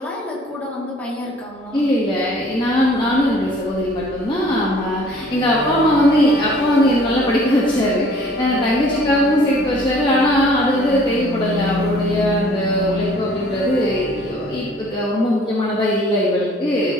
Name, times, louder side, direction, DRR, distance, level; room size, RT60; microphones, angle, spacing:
voice 1, 0.0-1.9 8.9-9.2, left 1 dB, 10° left, -7 dB, 2.2 m, -30 dB
voice 2, 1.7-16.9, equal, 25° left, -5 dB, 1.1 m, -19 dB
sound 1, 2.1-15.1, left 3 dB, 55° left, 0.7 m, -29 dB
12.5 x 7.3 x 2.9 m, 2.2 s
head